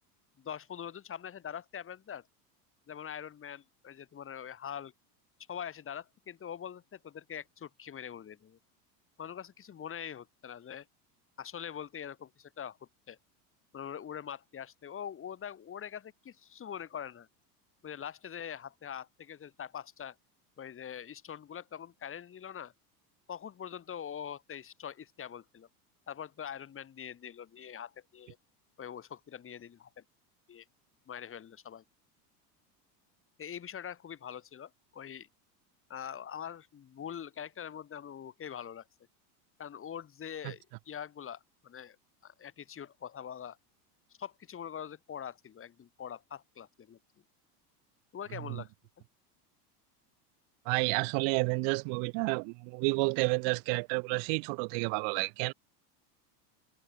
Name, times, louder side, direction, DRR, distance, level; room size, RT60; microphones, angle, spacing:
voice 1, 0.4-2.2 2.9-4.9 5.5-8.6 9.2-10.9 11.4-13.2 13.7-17.3 17.8-20.2 20.6-22.7 23.3-25.7 26.1-28.4 28.8-30.0 30.5-30.7 31.1-31.8 33.4-35.3 35.9-38.9 39.6-42.0 42.2-43.6 44.2-47.0 48.1-48.7 49.0-49.1, left 8 dB, 25° left, 1.7 m, -43 dB
voice 2, 50.7-55.5, right 40 dB or more, 55° right, 0.6 m, -30 dB
supercardioid pair, 105°, 47 cm